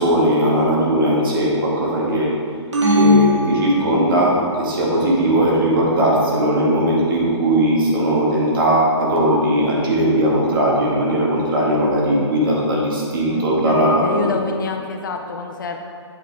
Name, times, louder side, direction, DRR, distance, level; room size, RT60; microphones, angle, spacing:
voice 1, 0.0-2.3 2.9-14.0, right 1 dB, 45° right, -4 dB, 1.9 m, -18 dB
sound 1, 2.7-4.4, left 2 dB, 80° right, 1.8 m, -18 dB
voice 2, 13.3-15.8, left 4 dB, 45° left, 4 dB, 0.6 m, -27 dB
8.2 x 6.1 x 3.6 m, 2.2 s
hypercardioid pair, 165°, 15 cm